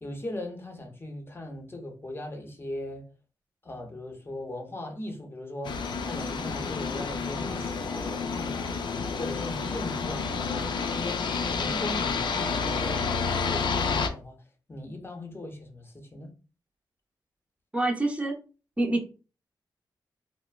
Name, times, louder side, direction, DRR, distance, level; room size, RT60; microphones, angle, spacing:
voice 1, 0.0-3.0 3.6-5.7 6.0-8.7 9.2-11.2 11.5-14.4 14.7-16.3, left 1 dB, 30° left, 0.7 m, -38 dB
sound 1, 5.6-14.1, left 5 dB, 65° left, 0.3 m, -30 dB
voice 2, 17.7-18.4 18.8-19.2, right 2 dB, 15° right, 0.6 m, -26 dB
3.1 x 2.0 x 2.3 m
cardioid pair, 60°, 8 cm